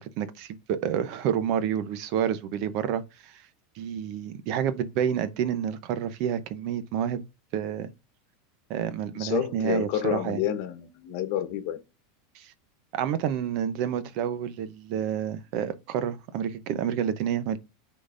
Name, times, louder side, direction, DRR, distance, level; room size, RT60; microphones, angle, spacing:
voice 1, 0.0-3.4 3.8-7.2 7.5-7.9 8.7-10.4 12.3-12.5 12.9-17.6, right 9 dB, 50° right, 0.7 m, -29 dB
voice 2, 9.1-11.8, left 11 dB, 55° left, 1.1 m, -29 dB
9.9 x 3.8 x 2.5 m
supercardioid pair, 145°, 0 cm